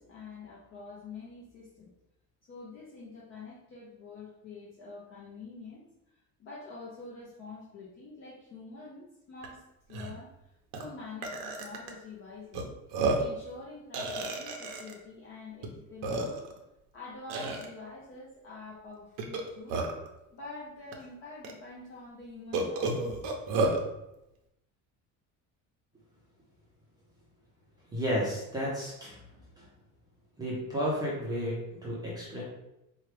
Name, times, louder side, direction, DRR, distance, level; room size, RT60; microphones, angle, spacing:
voice 1, 0.0-1.9 2.4-5.8 6.1-12.7 13.1-16.4 16.9-19.8 20.3-23.3, left 3 dB, 40° left, -6 dB, 0.7 m, -46 dB
Burping eructation, 9.4-9.5 9.9-10.1 10.7-10.8 11.2-11.9 12.5-12.6 12.9-13.4 13.9-14.9 15.6-15.7 16.0-16.6 17.3-17.7 19.2-20.1 20.9-21.0 21.4-21.5 22.5-23.8, right 3 dB, 70° right, 0.7 m, -31 dB
voice 2, 27.9-29.2 29.6-29.7 30.4-32.4, equal, 10° right, -7 dB, 0.6 m, -32 dB
4.5 x 2.3 x 3.2 m, 0.89 s
cardioid pair, 180°, 34 cm